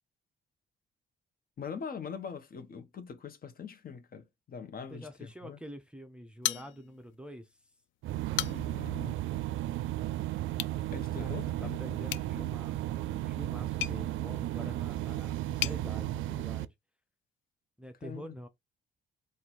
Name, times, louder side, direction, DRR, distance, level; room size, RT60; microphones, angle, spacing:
voice 1, 1.6-5.6 8.4-9.2 10.9-11.8 18.0-18.3, left 6 dB, 50° left, 1.1 m, -42 dB
voice 2, 4.9-7.6 11.1-16.7 17.8-18.5, equal, 5° right, 0.7 m, -46 dB
sound 1, 6.4-7.2 7.6-7.7 8.1-8.9 10.5-10.8 12.1-15.8, left 14 dB, 75° left, 0.4 m, -38 dB
sound 2, 8.0-16.6, right 14 dB, 75° right, 0.4 m, -34 dB
3.9 x 2.6 x 4.5 m
cardioid pair, 90°, 20 cm